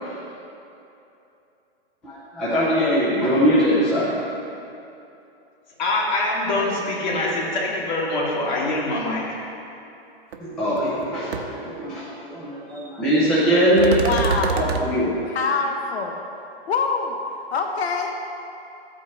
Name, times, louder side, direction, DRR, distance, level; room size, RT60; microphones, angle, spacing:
voice 1, 2.0-4.4 10.4-14.0 14.5-15.1, equal, 5° left, -11 dB, 0.4 m, -21 dB
voice 2, 5.8-9.3, left 2 dB, 45° left, -4 dB, 2.4 m, -24 dB
sound 1, 10.3-10.4 10.8-11.0 11.3-11.4 13.8-14.8, right 5 dB, 80° right, 1.0 m, -25 dB
voice 3, 14.0-14.7 15.3-16.1 16.7-17.2 17.5-18.1, left 5 dB, 80° left, 3 dB, 1.0 m, -24 dB
13.5 x 8.7 x 3.1 m, 2.8 s
hypercardioid pair, 175°, 31 cm